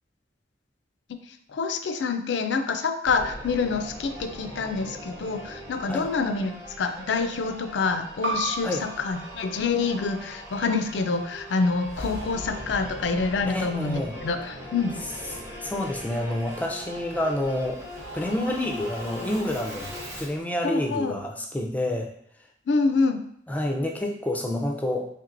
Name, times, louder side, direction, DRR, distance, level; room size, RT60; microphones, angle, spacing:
voice 1, 1.5-6.5 6.8-15.0 20.6-21.2 22.7-23.2, left 4 dB, 80° left, 7 dB, 0.4 m, -26 dB
Singing / Musical instrument, 3.0-20.4, equal, 15° right, 0.8 m, -40 dB
sound 1, 8.2-13.4, right 2 dB, 70° right, 0.5 m, -37 dB
voice 2, 13.4-14.1 15.6-17.8 18.1-22.1 23.5-25.1, left 1 dB, 10° left, 1 dB, 0.4 m, -28 dB
4.4 x 3.3 x 2.5 m, 0.68 s
head